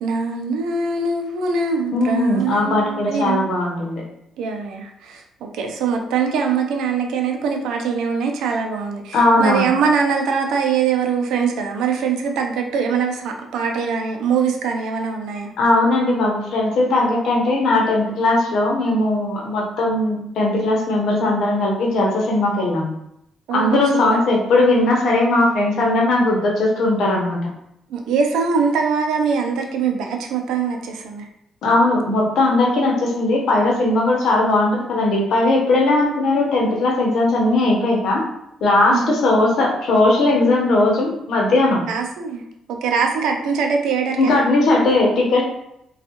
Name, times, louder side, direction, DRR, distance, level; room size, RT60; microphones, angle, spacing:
voice 1, 0.0-3.5 4.4-15.5 23.5-24.2 27.9-31.2 38.9-39.2 41.9-42.4 42.7-44.3, right 5 dB, 85° right, 3 dB, 0.4 m, -22 dB
voice 2, 1.9-4.0 9.1-9.7 15.6-22.9 23.5-27.4 31.6-38.2 38.6-41.8 44.2-45.4, left 2 dB, 75° left, -1 dB, 0.8 m, -18 dB
3.4 x 2.3 x 2.8 m, 0.81 s
cardioid pair, 90°, 0 cm